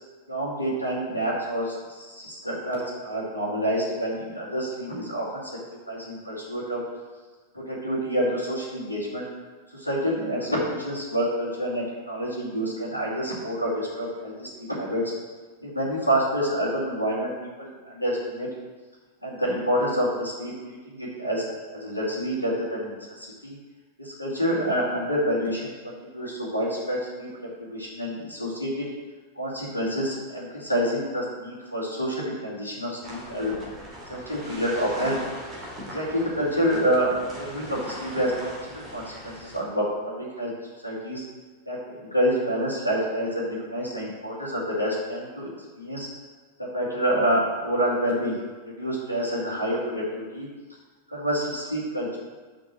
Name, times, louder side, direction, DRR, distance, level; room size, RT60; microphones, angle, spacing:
voice 1, 0.3-5.5 5.9-6.8 7.5-9.3 9.7-15.1 15.6-17.3 17.6-18.5 19.2-23.6 24.0-27.3 27.7-28.9 29.4-33.8 34.1-35.2 35.9-40.5 40.8-41.2 41.7-45.5 45.8-46.1 46.6-48.4 48.8-50.5 51.1-52.2, equal, 90° right, -7 dB, 2.5 m, -28 dB
sound 1, 33.0-39.6, equal, 25° right, 2.6 m, -40 dB
6.4 x 5.6 x 6.0 m, 1.4 s
figure-of-eight pair, 90°, 0 cm